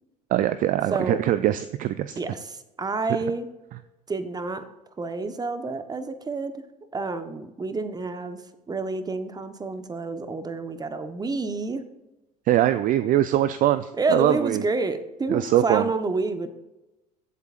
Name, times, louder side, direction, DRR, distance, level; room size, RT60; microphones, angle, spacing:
voice 1, 0.3-2.2 12.5-14.6 15.3-15.9, right 12 dB, 40° right, 13 dB, 0.5 m, -22 dB
voice 2, 0.9-1.2 2.2-3.5 4.1-4.7 5.0-6.6 6.9-8.4 8.7-11.8 14.0-16.5, right 3 dB, 20° right, 10 dB, 1.2 m, -29 dB
22.0 x 8.1 x 2.5 m, 1.0 s
figure-of-eight pair, 70°, 21 cm